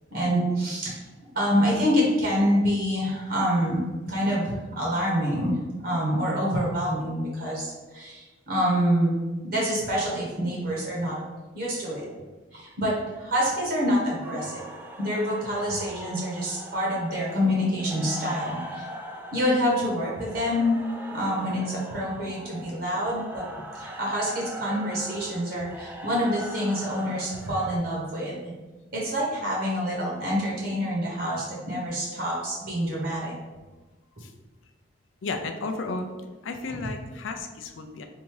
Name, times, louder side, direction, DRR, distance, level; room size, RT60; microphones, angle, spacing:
voice 1, 0.1-1.0 1.3-5.5 5.8-9.2 9.5-11.2 11.5-12.0 12.5-14.6 15.0-18.8 19.3-20.8 21.1-23.4 23.8-28.5 28.9-33.3, equal, 50° right, -4 dB, 1.2 m, -26 dB
sound 1, 14.2-27.8, equal, 10° right, 0.4 m, -41 dB
voice 2, 35.2-36.1 36.4-38.0, left 3 dB, 80° left, 5 dB, 0.4 m, -33 dB
3.6 x 2.6 x 4.7 m, 1.2 s
head